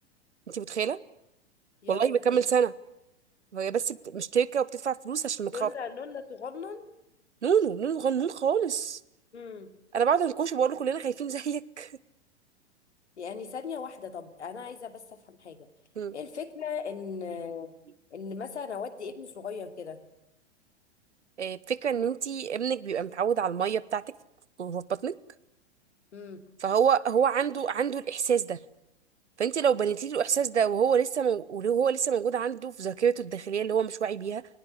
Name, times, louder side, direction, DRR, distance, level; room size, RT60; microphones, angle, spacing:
voice 1, 0.5-1.0 1.9-2.7 3.5-5.7 7.4-9.0 9.9-11.9 16.0-16.1 21.4-24.0 24.6-25.2 26.6-28.6 29.4-34.5, right 7 dB, 80° right, 20 dB, 1.1 m, -27 dB
voice 2, 1.8-2.4 5.5-6.9 9.3-9.7 13.2-15.7 16.1-17.8 18.1-20.0 26.1-26.4, left 6 dB, 75° left, 9 dB, 2.8 m, -38 dB
20.0 x 20.0 x 9.9 m, 0.83 s
figure-of-eight pair, 100°, 34 cm